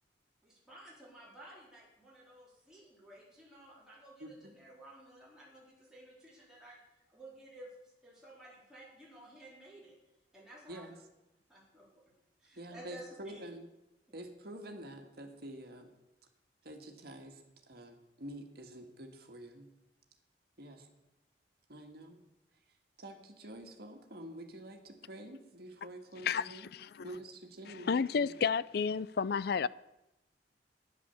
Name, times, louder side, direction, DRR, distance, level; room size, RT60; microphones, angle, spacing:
voice 1, 0.4-6.8 7.1-9.9 10.3-10.8 11.5-11.9 12.4-13.4, right 1 dB, 5° right, 4.0 m, -54 dB
voice 2, 4.2-4.5 10.7-10.9 12.6-13.7 14.1-15.9 16.6-19.7 20.6-20.9 21.7-22.2 23.0-26.7 27.0-28.3, right 1 dB, 60° right, 1.9 m, -48 dB
voice 3, 26.2-26.6 27.9-29.7, left 6 dB, 60° left, 0.4 m, -30 dB
11.0 x 10.0 x 7.1 m
head